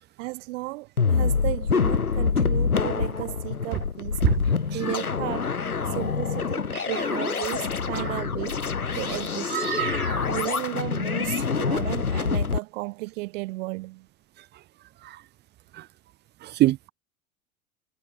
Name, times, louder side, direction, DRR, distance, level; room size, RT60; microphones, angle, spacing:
voice 1, 0.2-4.2 4.7-5.5 5.9-8.7 8.9-9.6 10.3-14.1, right 23 dB, 60° right, 3.2 m, -34 dB
sound 1, 1.0-12.6, left 5 dB, 90° left, 2.4 m, -26 dB
voice 2, 9.5-10.3 15.0-15.2 15.7-15.9 16.4-16.9, right 15 dB, 25° right, 0.5 m, -26 dB
figure-of-eight pair, 85°, 43 cm